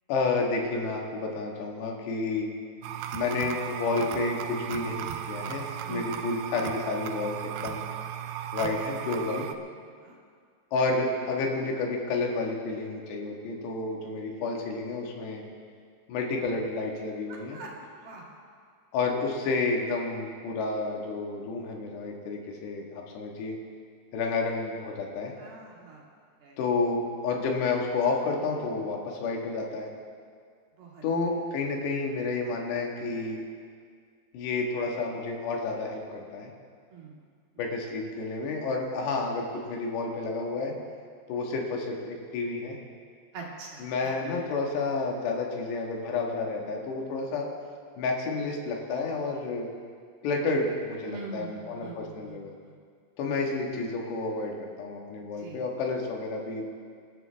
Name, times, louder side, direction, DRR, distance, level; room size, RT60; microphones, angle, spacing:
voice 1, 0.1-2.5 3.1-7.8 8.5-9.4 10.7-15.4 16.1-17.6 18.9-23.6 24.1-25.3 26.6-29.9 31.0-33.4 34.3-36.5 37.6-40.7 41.3-42.8 43.8-47.5 48.0-49.7 50.2-52.5 53.2-56.7, left 3 dB, 85° left, 0 dB, 3.9 m, -30 dB
sound 1, 2.8-9.6, right 10 dB, 80° right, 2.7 m, -36 dB
voice 2, 5.9-6.3 10.0-10.2 17.3-18.3 25.4-26.0 26.4-26.6 30.8-31.0 36.9-37.2 43.3-44.1 51.1-52.4 52.7-52.8 55.2-55.6, right 4 dB, 65° right, -3 dB, 4.0 m, -43 dB
26.0 x 12.0 x 3.5 m, 2.1 s
omnidirectional pair, 4.8 m